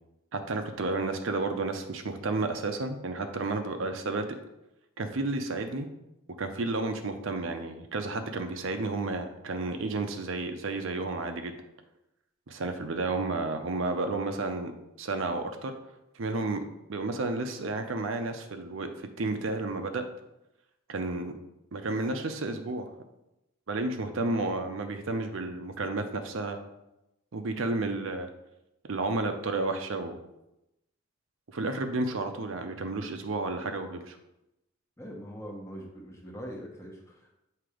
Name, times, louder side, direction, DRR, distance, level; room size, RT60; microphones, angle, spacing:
voice 1, 0.3-4.4 5.0-5.9 6.4-11.5 12.5-14.7 15.0-15.7 16.1-16.6 16.9-20.0 20.9-21.3 21.7-22.9 23.7-26.6 27.3-28.3 28.9-30.2 31.5-34.2, right 3 dB, 65° right, 6 dB, 0.6 m, -31 dB
voice 2, 35.0-37.3, equal, 15° left, -1 dB, 1.0 m, -42 dB
7.6 x 2.9 x 4.9 m, 0.90 s
head